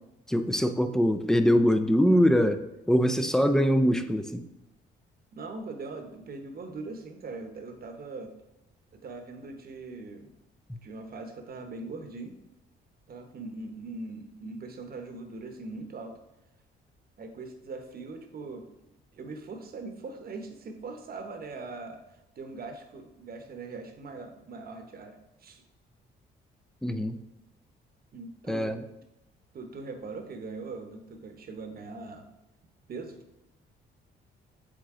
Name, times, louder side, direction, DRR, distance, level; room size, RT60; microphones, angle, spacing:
voice 1, 0.3-4.4 10.7-10.8 26.8-27.2 28.5-28.8, equal, 5° left, 9 dB, 0.5 m, -23 dB
voice 2, 5.3-8.3 9.0-10.3 10.8-12.3 13.1-16.2 17.2-18.7 19.1-22.0 22.4-25.6 28.1-28.8 29.5-32.3 32.9-33.2, right 3 dB, 50° right, 6 dB, 1.0 m, -41 dB
7.5 x 3.8 x 3.7 m, 0.90 s
cardioid pair, 90°, 20 cm